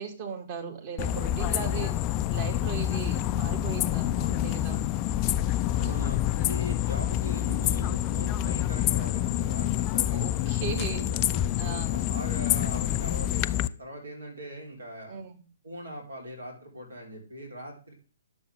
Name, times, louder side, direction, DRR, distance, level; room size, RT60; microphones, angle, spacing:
voice 1, 0.0-1.9 2.2-4.1 4.4-4.9 5.6-6.1 10.1-11.1 11.6-11.9 15.1-15.4, right 6 dB, 35° right, 3 dB, 2.2 m, -37 dB
sound 1, 1.0-13.7, left 12 dB, 25° left, 0.3 m, -27 dB
voice 2, 5.7-15.2 15.6-17.9, equal, 70° right, 1 dB, 3.5 m, -41 dB
11.0 x 7.1 x 3.4 m, 0.37 s
figure-of-eight pair, 125°, 0 cm